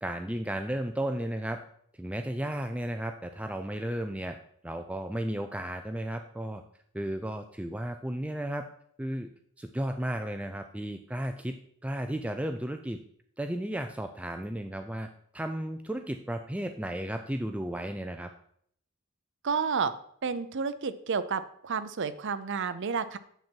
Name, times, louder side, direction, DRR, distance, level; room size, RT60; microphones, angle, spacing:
voice 1, 0.0-1.6 2.0-4.4 4.6-6.6 6.9-8.7 9.0-9.3 9.6-13.0 13.4-15.1 15.3-18.3, right 1 dB, 5° right, 5 dB, 0.4 m, -34 dB
voice 2, 19.4-19.9 20.2-23.2, right 5 dB, 55° right, 12 dB, 0.6 m, -30 dB
9.1 x 7.3 x 4.5 m, 0.65 s
head